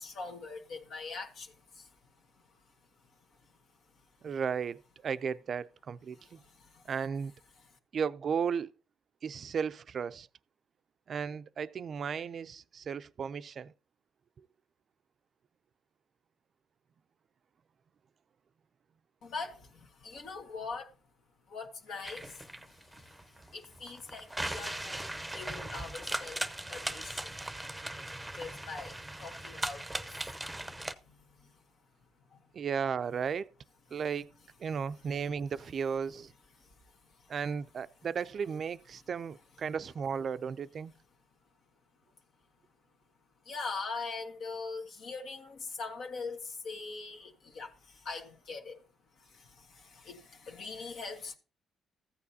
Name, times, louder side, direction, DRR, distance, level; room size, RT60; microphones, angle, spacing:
voice 1, 0.0-1.9 6.2-6.9 19.2-20.9 21.5-27.5 28.3-30.3 30.6-31.5 32.3-32.4 43.4-48.9 49.2-51.3, left 4 dB, 70° left, 1.5 m, -43 dB
voice 2, 4.2-6.4 6.9-7.3 7.9-8.7 9.2-10.3 11.1-13.7 32.5-33.5 33.9-34.3 34.6-36.3 37.3-40.9, right 6 dB, 55° right, 0.4 m, -35 dB
sound 1, 22.0-30.9, right 1 dB, 5° right, 0.7 m, -39 dB
14.5 x 8.4 x 2.8 m
cardioid pair, 90°, 0 cm